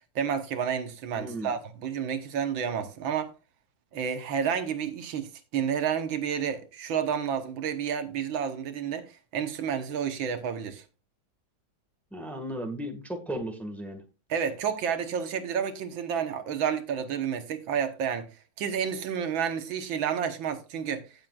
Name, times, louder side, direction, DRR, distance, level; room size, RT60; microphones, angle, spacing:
voice 1, 0.2-3.3 3.9-10.8 14.3-18.3 18.6-21.0, right 7 dB, 75° right, 1.8 m, -30 dB
voice 2, 1.1-1.5 12.1-14.0, right 1 dB, ahead, 1.4 m, -35 dB
16.0 x 7.5 x 2.4 m
omnidirectional pair, 2.2 m